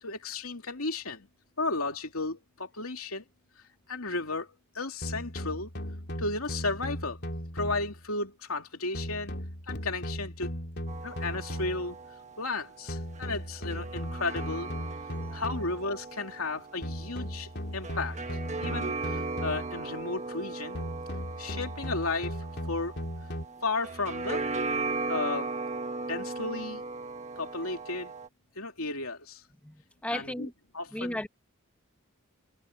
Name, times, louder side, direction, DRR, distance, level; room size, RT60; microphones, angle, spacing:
voice 1, 0.0-1.3 1.6-3.2 3.9-5.7 6.2-7.2 7.5-9.3 9.7-10.5 11.0-12.0 12.4-14.7 15.3-18.2 18.6-20.8 21.4-22.4 22.7-22.9 23.6-24.4 25.1-25.5 26.0-26.8 27.4-28.1 28.5-29.4 30.1-31.2, left 3 dB, 90° left, 2.9 m, -34 dB
sound 1, 5.0-8.0 8.9-12.0 12.9-15.9 16.8-19.8 20.8-23.5, equal, 50° left, 3.0 m, -37 dB
sound 2, 10.9-28.3, right 3 dB, 35° right, 1.3 m, -37 dB
voice 2, 29.6-30.5 30.9-31.3, left 1 dB, 5° left, 1.3 m, -35 dB
head